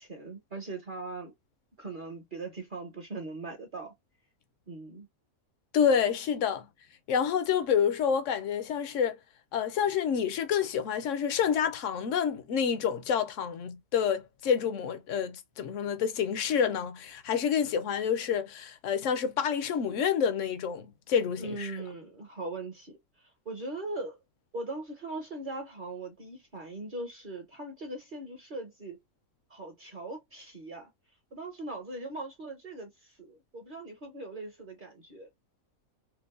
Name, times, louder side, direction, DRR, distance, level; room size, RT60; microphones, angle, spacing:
voice 1, 0.0-1.3 1.8-3.9 4.7-5.1 21.4-24.2 24.5-29.0 29.5-30.9 31.3-35.3, right 2 dB, 45° right, 0.8 m, -40 dB
voice 2, 5.7-6.7 7.1-9.2 9.5-21.7, left 7 dB, 65° left, 0.9 m, -28 dB
4.6 x 2.1 x 2.4 m
omnidirectional pair, 1.5 m